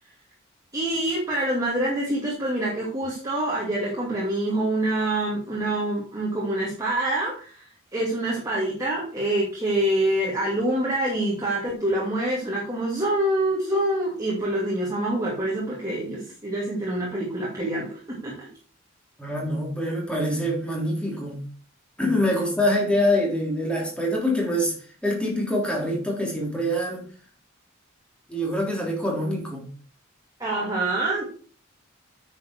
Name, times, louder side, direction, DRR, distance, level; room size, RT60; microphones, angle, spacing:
voice 1, 0.7-18.5 30.4-31.2, right 1 dB, 15° right, -5 dB, 2.6 m, -26 dB
voice 2, 19.2-21.4 22.0-24.7 25.0-27.0 28.3-29.7, left 1 dB, 5° left, -2 dB, 3.7 m, -25 dB
9.4 x 7.3 x 4.6 m, 0.42 s
head